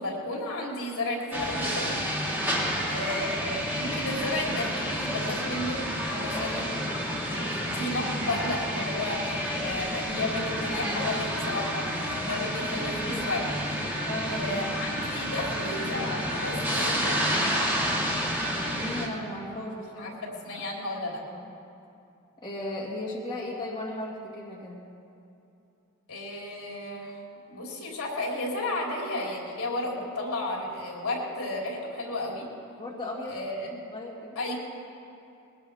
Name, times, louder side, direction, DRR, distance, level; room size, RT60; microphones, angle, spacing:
voice 1, 0.0-2.0 2.3-2.4 2.8-5.8 6.1-13.9 14.3-17.6 19.7-21.2 26.1-27.2 27.5-32.5 33.3-33.7 34.4-34.5, left 2 dB, 65° left, -3 dB, 3.5 m, -33 dB
sound 1, 1.3-19.1, equal, 10° right, 1.8 m, -30 dB
voice 2, 6.2-6.6 14.0-14.7 18.5-20.2 20.5-20.7 21.3-21.6 22.4-24.8 32.8-33.4 33.7-34.4, left 1 dB, 20° left, -6 dB, 2.0 m, -36 dB
21.0 x 18.0 x 3.5 m, 2.7 s
head